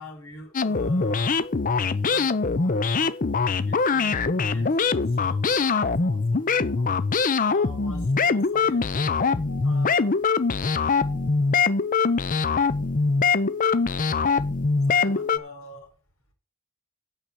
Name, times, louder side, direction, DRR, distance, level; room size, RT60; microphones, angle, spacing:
voice 1, 0.0-1.5 2.0-6.9 7.4-8.8 9.4-10.1 10.9-11.8 14.9-15.9, left 1 dB, 65° left, 4 dB, 5.0 m, -44 dB
sound 1, 0.5-15.4, left 4 dB, 40° left, 0.6 m, -23 dB
8.9 x 6.8 x 6.9 m, 0.33 s
head